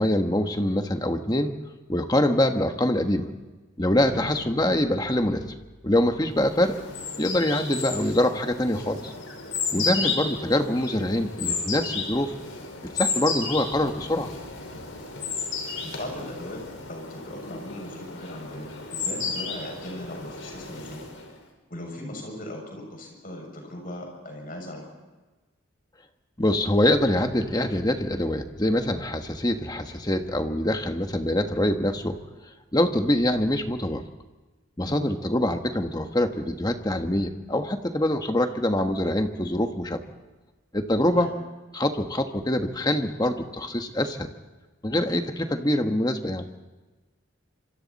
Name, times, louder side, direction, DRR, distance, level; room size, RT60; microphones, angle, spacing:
voice 1, 0.0-1.5 1.9-3.3 3.8-5.5 5.8-6.8 7.2-9.1 9.7-12.3 12.9-14.3 26.4-32.2 32.7-34.0 34.8-40.0 40.7-41.3 41.7-44.3 44.8-46.5, left 1 dB, 20° left, 6 dB, 1.3 m, -24 dB
sound 1, 6.4-21.4, left 4 dB, 80° left, 4.9 m, -33 dB
voice 2, 9.7-10.1 15.8-16.6 16.9-21.0 21.7-24.9 34.8-35.1 41.1-41.4, left 1 dB, 45° left, 1 dB, 6.7 m, -38 dB
26.5 x 24.5 x 4.2 m, 1.2 s
head